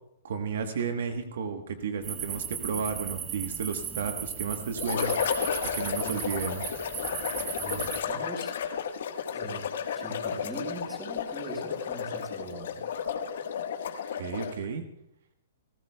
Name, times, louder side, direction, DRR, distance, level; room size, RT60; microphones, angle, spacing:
voice 1, 0.2-5.1 5.7-6.6 14.1-14.8, right 6 dB, 65° right, 6 dB, 1.2 m, -33 dB
sound 1, 2.0-8.0, right 8 dB, 20° right, 0.9 m, -37 dB
sound 2, 4.8-14.7, left 7 dB, 65° left, 1.4 m, -33 dB
voice 2, 5.9-6.4 7.6-8.6 9.3-12.8, right 1 dB, 5° right, 0 dB, 4.6 m, -41 dB
28.5 x 14.0 x 2.3 m, 0.78 s
hypercardioid pair, 140°, 0 cm